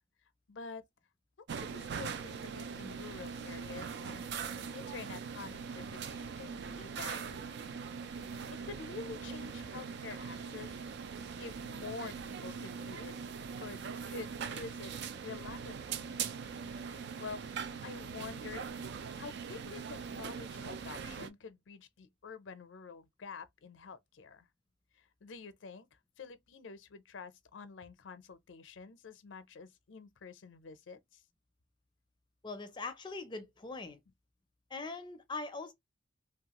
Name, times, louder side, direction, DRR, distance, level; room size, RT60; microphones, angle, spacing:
voice 1, 0.5-0.9 1.6-4.3 4.7-7.5 8.3-10.8 11.4-13.1 13.6-14.9 15.2-16.1 17.2-18.7 19.1-24.5 24.9-25.9 26.2-31.2, left 5 dB, 75° left, 0.5 m, -48 dB
sound 1, 1.5-21.3, right 6 dB, 60° right, 0.4 m, -41 dB
voice 2, 32.4-34.0 34.7-35.7, left 3 dB, 25° left, 0.4 m, -41 dB
3.1 x 2.3 x 2.8 m
head